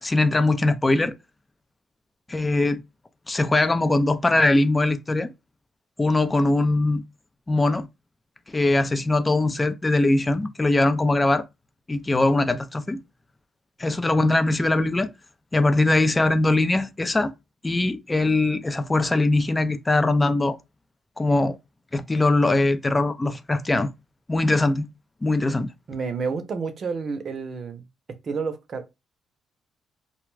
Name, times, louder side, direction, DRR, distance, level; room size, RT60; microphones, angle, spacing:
voice 1, 0.0-1.1 2.3-2.8 3.3-5.3 6.0-7.0 7.5-7.9 8.5-11.4 11.9-13.0 13.8-15.1 15.5-17.3 17.6-20.6 21.2-21.6 21.9-23.9 24.3-24.9 25.2-25.7, left 2 dB, 20° left, 0.4 m, -21 dB
voice 2, 25.9-27.9 28.2-29.0, right 5 dB, 50° right, 0.6 m, -30 dB
2.3 x 2.2 x 3.1 m
cardioid pair, 90°, 0 cm